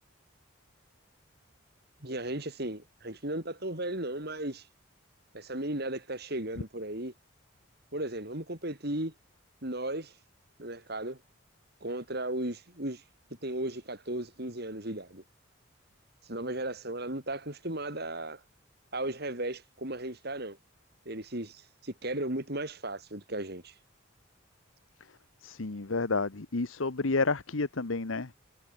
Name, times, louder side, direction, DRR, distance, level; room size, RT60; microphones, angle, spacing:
voice 1, 2.0-4.7 5.3-7.1 7.9-9.1 9.6-10.2 10.6-11.2 11.8-13.0 13.4-15.2 16.2-18.4 18.9-20.6 21.0-23.8, right 1 dB, 50° right, 4.9 m, -35 dB
voice 2, 25.4-28.3, left 3 dB, 75° left, 1.1 m, -30 dB
head